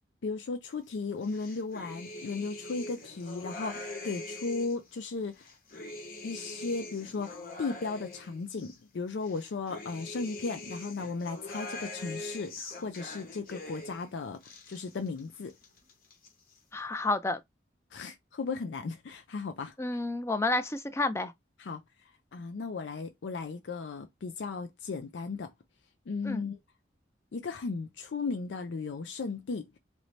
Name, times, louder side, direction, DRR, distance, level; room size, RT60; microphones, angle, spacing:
voice 1, 0.2-5.5 6.2-14.4 14.7-15.5 17.9-19.7 21.6-21.8 22.3-25.5 26.1-26.6 27.3-29.7, left 4 dB, 80° left, 0.4 m, -36 dB
sound 1, 1.2-4.9 5.3-8.8 9.2-14.1 14.3-15.2 15.5-16.3, left 2 dB, 50° left, 1.0 m, -43 dB
voice 2, 16.7-17.4 19.8-21.3 26.2-26.4, left 2 dB, 15° left, 0.3 m, -30 dB
3.1 x 2.6 x 3.2 m
head